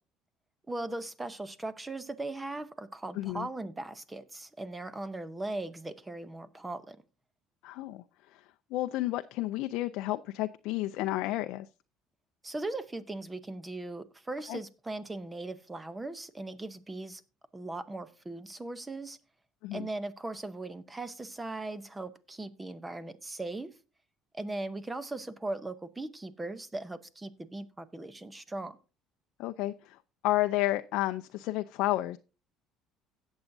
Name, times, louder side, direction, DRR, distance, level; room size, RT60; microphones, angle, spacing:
voice 1, 0.7-7.0 12.4-17.2 17.5-19.2 19.7-23.8 24.3-28.8, right 2 dB, 10° right, 0.7 m, -39 dB
voice 2, 3.2-3.5 7.6-8.0 8.3-8.4 8.7-11.7 14.5-14.6 19.6-19.9 29.4-30.0 30.2-32.2, left 16 dB, 70° left, 0.4 m, -31 dB
16.5 x 7.2 x 2.7 m
cardioid pair, 150°, 0 cm